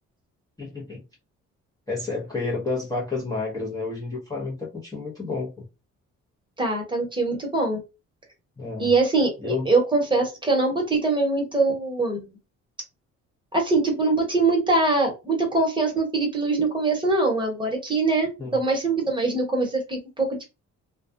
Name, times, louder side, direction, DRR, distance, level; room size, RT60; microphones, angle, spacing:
voice 1, 0.6-1.0 1.9-5.6 8.6-8.9 9.4-9.7 18.4-18.6, left 3 dB, 10° left, 0.8 m, -30 dB
voice 2, 6.6-7.8 8.8-12.4 13.5-20.4, right 3 dB, 15° right, 1.1 m, -23 dB
2.3 x 2.2 x 2.5 m
cardioid pair, 90°, 30 cm